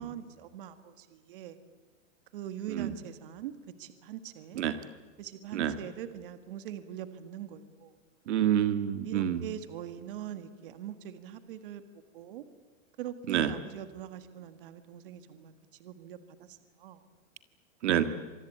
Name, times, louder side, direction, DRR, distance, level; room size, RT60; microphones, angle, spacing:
voice 1, 0.0-1.6 2.3-4.6 5.2-7.9 9.0-11.8 12.1-12.4 13.0-15.5 15.8-17.0, right 10 dB, 45° right, 11 dB, 1.8 m, -42 dB
voice 2, 8.3-9.4 13.3-13.5 17.8-18.0, right 10 dB, 60° right, 10 dB, 1.8 m, -27 dB
26.0 x 20.5 x 8.7 m, 1.4 s
supercardioid pair, 170°, 39 cm